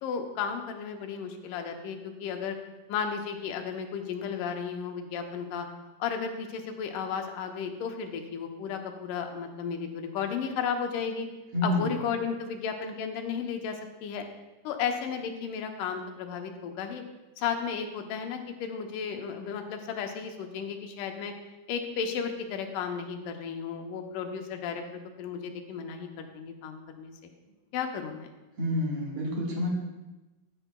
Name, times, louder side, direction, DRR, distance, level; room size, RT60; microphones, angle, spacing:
voice 1, 0.0-2.6 2.9-5.7 6.0-11.3 11.6-14.2 14.6-17.0 17.4-21.3 21.7-24.8 25.2-27.1 27.7-28.3, left 6 dB, 80° left, 4 dB, 2.4 m, -34 dB
voice 2, 11.5-11.9 28.6-29.7, left 1 dB, 50° right, -2 dB, 2.1 m, -28 dB
14.5 x 7.9 x 2.2 m, 1.1 s
omnidirectional pair, 3.8 m